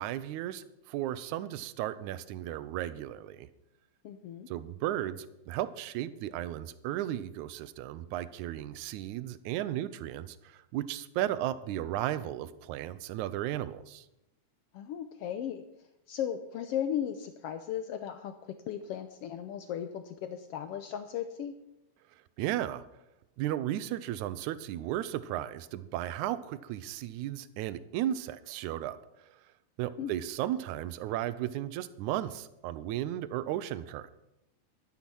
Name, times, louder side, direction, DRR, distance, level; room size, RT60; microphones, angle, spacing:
voice 1, 0.0-3.5 4.5-14.1 22.4-22.8 23.4-29.0 29.3-29.4 29.8-34.1, right 13 dB, 80° right, 15 dB, 2.0 m, -35 dB
voice 2, 4.0-4.5 14.7-15.6 16.1-21.5 30.0-30.1, left 9 dB, 85° left, 8 dB, 1.3 m, -36 dB
12.0 x 10.0 x 6.2 m, 0.89 s
omnidirectional pair, 3.5 m